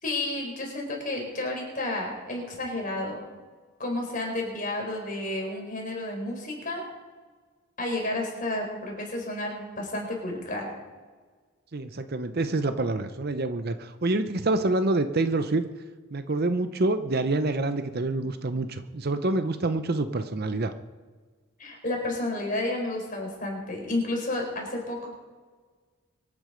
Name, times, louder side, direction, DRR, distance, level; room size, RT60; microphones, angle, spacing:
voice 1, 0.0-3.2 3.8-6.8 7.8-10.7 21.6-25.2, left 2 dB, 35° left, 0 dB, 4.6 m, -31 dB
voice 2, 11.7-15.6 16.1-20.7, right 2 dB, 45° right, 10 dB, 0.7 m, -27 dB
24.0 x 9.7 x 5.1 m, 1.5 s
head